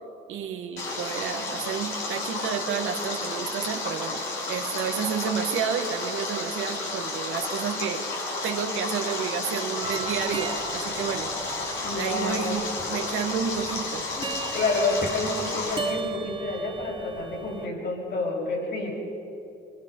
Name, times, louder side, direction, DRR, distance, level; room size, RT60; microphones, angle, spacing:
voice 1, 0.3-8.1 8.4-11.3 11.9-14.1, right 7 dB, 80° right, 3 dB, 1.6 m, -30 dB
Stream, 0.8-15.8, left 3 dB, 80° left, 5.4 m, -32 dB
sound 1, 9.8-17.7, right 4 dB, 25° right, 1.1 m, -37 dB
voice 2, 11.8-12.6 14.2-18.9, left 3 dB, 55° left, -2 dB, 7.5 m, -29 dB
24.5 x 23.5 x 5.6 m, 2.8 s
cardioid pair, 90°, 20 cm